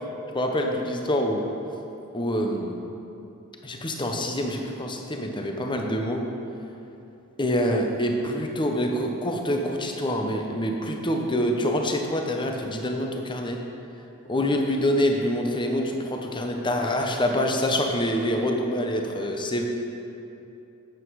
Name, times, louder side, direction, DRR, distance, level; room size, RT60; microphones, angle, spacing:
voice 1, 0.3-1.4 2.1-2.7 3.6-6.2 7.4-13.6 14.3-19.6, equal, 20° left, 2 dB, 0.9 m, -26 dB
11.5 x 8.2 x 4.8 m, 2.8 s
head